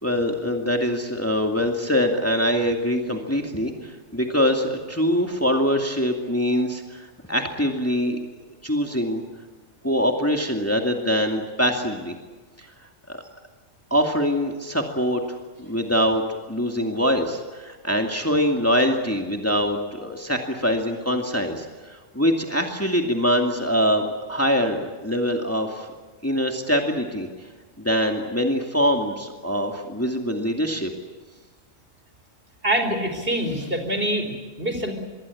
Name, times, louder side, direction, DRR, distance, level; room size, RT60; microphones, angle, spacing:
voice 1, 0.0-8.2 8.6-9.2 9.8-12.1 12.6-12.7 13.1-13.2 13.9-15.2 15.6-16.2 16.5-25.9 26.2-27.3 27.8-30.9, equal, 10° left, 3 dB, 2.4 m, -23 dB
voice 2, 32.6-34.9, right 1 dB, 45° right, 6 dB, 4.9 m, -25 dB
26.0 x 22.5 x 8.6 m, 1.3 s
omnidirectional pair, 1.3 m